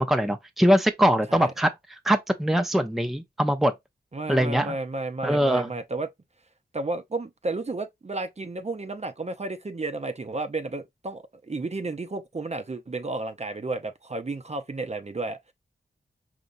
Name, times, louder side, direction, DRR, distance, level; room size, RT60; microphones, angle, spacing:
voice 1, 0.0-1.7 2.0-3.7 4.3-4.7 5.2-5.7, equal, ahead, 0.6 m, -22 dB
voice 2, 4.1-6.1 6.7-15.5, right 3 dB, 35° right, 0.7 m, -32 dB
5.2 x 3.0 x 2.6 m
wide cardioid pair, 65°, 19 cm